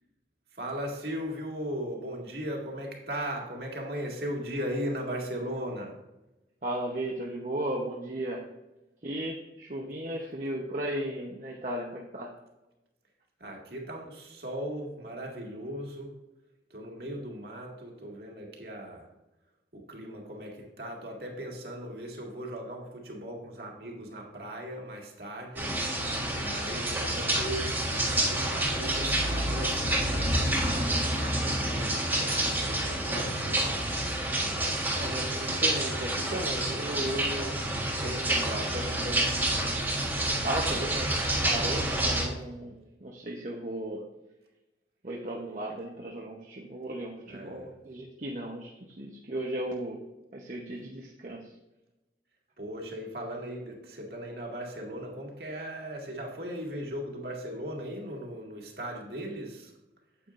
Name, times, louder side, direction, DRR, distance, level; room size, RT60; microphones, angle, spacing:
voice 1, 0.5-5.9 13.4-16.2 16.7-19.1 19.7-25.7 26.4-33.8 47.3-47.7 52.6-59.7, equal, 60° right, -1 dB, 2.0 m, -38 dB
voice 2, 6.6-8.4 9.0-12.3 34.4-34.6 35.0-37.6 38.0-39.4 40.4-44.0 45.0-50.0 50.3-51.5, right 1 dB, 45° right, -2 dB, 0.9 m, -36 dB
sound 1, 25.6-42.3, right 1 dB, 10° right, 1.4 m, -28 dB
9.3 x 8.5 x 2.5 m, 0.99 s
head